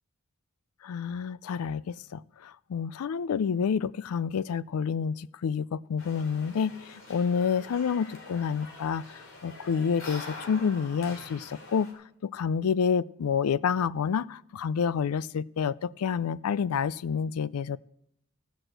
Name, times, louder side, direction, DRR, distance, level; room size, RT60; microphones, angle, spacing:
voice 1, 0.8-9.0 9.4-17.8, left 6 dB, 85° left, 19 dB, 0.4 m, -29 dB
sound 1, 6.0-11.9, left 3 dB, 60° left, 3.2 m, -45 dB
15.5 x 6.3 x 7.8 m, 0.77 s
head